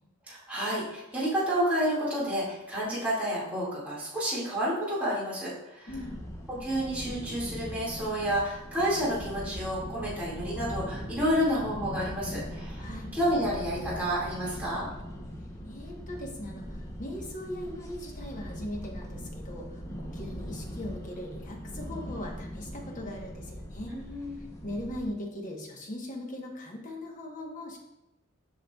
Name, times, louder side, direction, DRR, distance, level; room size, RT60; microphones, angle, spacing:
voice 1, 0.3-5.9 6.5-14.9 23.9-24.4, equal, 5° right, -9 dB, 2.0 m, -30 dB
voice 2, 5.9-6.2 12.8-13.1 15.6-24.0 24.4-27.8, left 1 dB, 35° left, 1 dB, 1.0 m, -39 dB
sound 1, 5.9-25.1, equal, 15° left, 0.7 m, -40 dB
7.8 x 5.7 x 2.3 m, 0.91 s
head